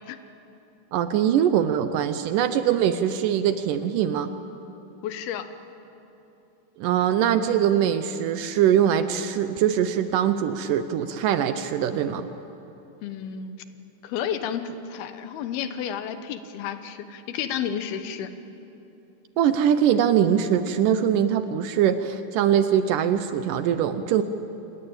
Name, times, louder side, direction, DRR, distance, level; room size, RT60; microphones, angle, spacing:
voice 1, 0.9-4.3 6.8-12.3 19.4-24.2, right 9 dB, 75° right, 10 dB, 2.1 m, -22 dB
voice 2, 5.0-5.5 13.0-13.6 14.0-18.3, left 8 dB, 85° left, 10 dB, 3.0 m, -31 dB
27.0 x 20.0 x 8.8 m, 3.0 s
omnidirectional pair, 4.3 m